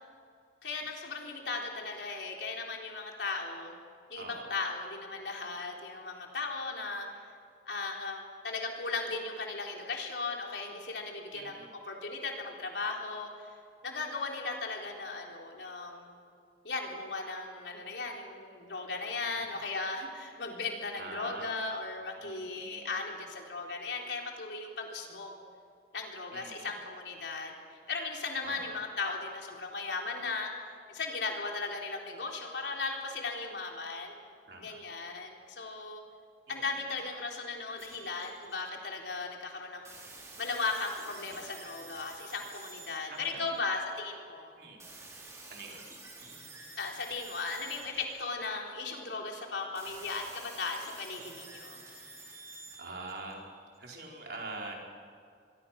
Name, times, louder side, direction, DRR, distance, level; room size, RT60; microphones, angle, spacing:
voice 1, 0.6-3.7 4.1-7.3 7.7-13.6 13.8-16.1 16.6-25.4 25.9-34.1 34.6-36.0 36.5-40.0 40.4-44.5 46.8-51.8, left 3 dB, 85° left, 0 dB, 3.8 m, -37 dB
voice 2, 4.2-4.5 11.3-11.7 19.3-19.6 21.0-21.6 22.2-23.0 26.3-26.7 28.4-28.8 34.5-34.8 36.5-36.6 43.1-43.4 44.5-44.8 45.5-45.8 52.8-53.4 53.8-54.8, right 2 dB, 65° right, -1 dB, 4.6 m, -44 dB
sound 1, 37.8-39.0 39.9-44.0 44.8-48.9 49.8-53.8, right 3 dB, 15° right, 4.4 m, -50 dB
24.5 x 22.5 x 6.0 m, 2.3 s
head